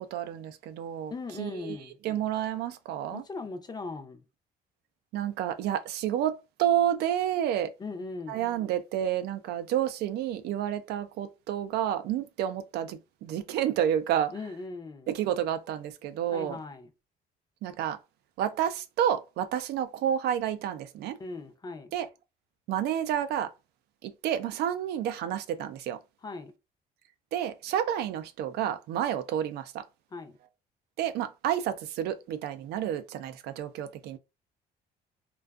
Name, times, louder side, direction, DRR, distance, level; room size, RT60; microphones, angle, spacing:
voice 1, 0.0-1.1 1.4-1.8 2.0-3.2 5.1-7.7 8.3-14.3 15.1-16.6 17.6-18.0 18.4-21.2 21.9-22.1 22.7-23.5 24.0-26.0 27.3-29.8 31.0-34.2, right 10 dB, 75° right, 0.4 m, -30 dB
voice 2, 1.1-2.0 3.1-4.2 7.8-8.4 14.3-15.1 16.3-16.9 21.2-21.9 26.2-26.5 30.1-30.4, left 3 dB, 25° left, 0.5 m, -39 dB
2.5 x 2.3 x 2.3 m
cardioid pair, 110°, 17 cm